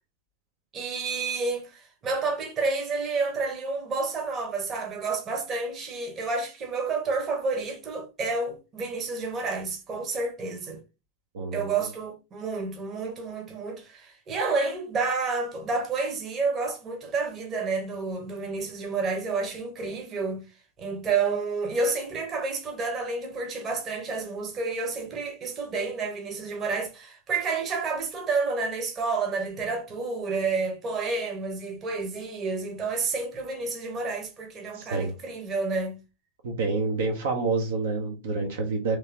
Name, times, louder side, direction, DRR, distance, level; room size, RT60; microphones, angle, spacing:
voice 1, 0.7-10.8 11.5-20.4 20.8-36.0, right 4 dB, 25° right, 1.2 m, -30 dB
voice 2, 11.3-11.7 34.7-35.1 36.4-39.0, right 3 dB, 60° right, 1.0 m, -28 dB
3.4 x 3.3 x 2.9 m
figure-of-eight pair, 90°, 0 cm